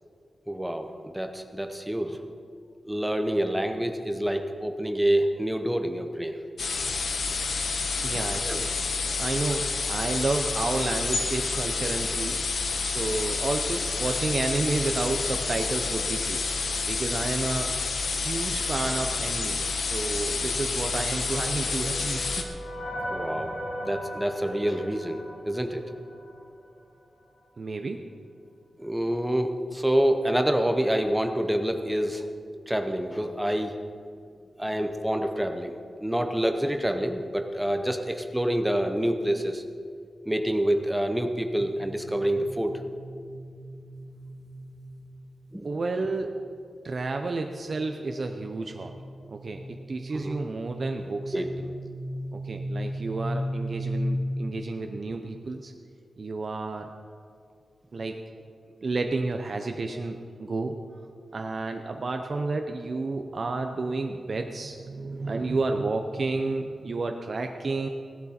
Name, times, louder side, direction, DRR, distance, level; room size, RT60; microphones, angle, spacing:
voice 1, 0.5-2.2 2.9-6.4 8.4-8.6 23.1-23.5 23.8-25.8 28.8-32.3 32.7-33.8 34.6-35.7 36.0-39.6 40.3-42.9 45.5-45.7 50.2-50.3 51.3-51.5, right 1 dB, 5° right, 6 dB, 0.7 m, -27 dB
sound 1, 6.6-22.4, left 4 dB, 70° left, 1.2 m, -29 dB
voice 2, 8.0-8.7 9.2-16.4 16.8-17.7 18.2-22.3 27.6-28.1 45.6-46.4 46.8-51.7 52.3-55.7 56.2-56.9 57.9-58.2 58.8-60.7 61.3-67.9, right 3 dB, 45° right, 4 dB, 0.6 m, -31 dB
sound 2, 21.4-26.5, equal, 40° left, 3.1 m, -38 dB
sound 3, 41.6-45.4 46.9-54.5, equal, 25° right, 2.1 m, -36 dB
16.5 x 12.0 x 4.3 m, 2.3 s
wide cardioid pair, 165°, 0 cm